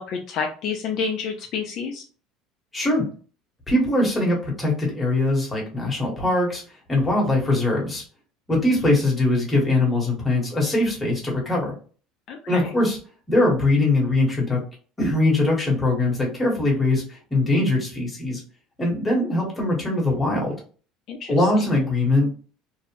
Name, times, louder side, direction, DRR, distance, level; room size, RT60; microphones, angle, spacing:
voice 1, 0.0-2.0 12.3-12.6 21.1-21.3, left 5 dB, 45° left, 3 dB, 0.4 m, -29 dB
voice 2, 2.7-3.0 3.7-6.6 6.9-8.0 8.5-11.7 12.5-13.0 13.3-14.6 15.0-18.4 18.8-20.5 21.3-22.3, left 2 dB, 10° left, -3 dB, 1.0 m, -21 dB
2.6 x 2.0 x 2.9 m, 0.39 s
cardioid pair, 150°, 0 cm